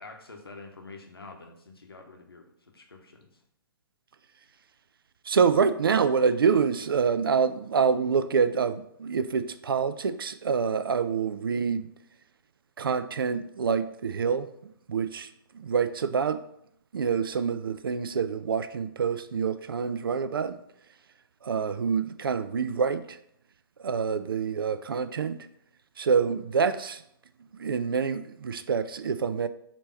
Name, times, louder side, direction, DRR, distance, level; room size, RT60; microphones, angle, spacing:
voice 1, 0.0-2.5 2.7-3.3, left 3 dB, 80° left, 3 dB, 0.9 m, -46 dB
voice 2, 5.3-11.9 12.8-15.3 15.5-16.4 16.9-20.6 21.4-23.2 23.8-25.4 26.0-27.0 27.6-29.5, right 6 dB, 70° right, 13 dB, 0.4 m, -26 dB
4.3 x 2.8 x 4.3 m, 0.71 s
figure-of-eight pair, 120°, 12 cm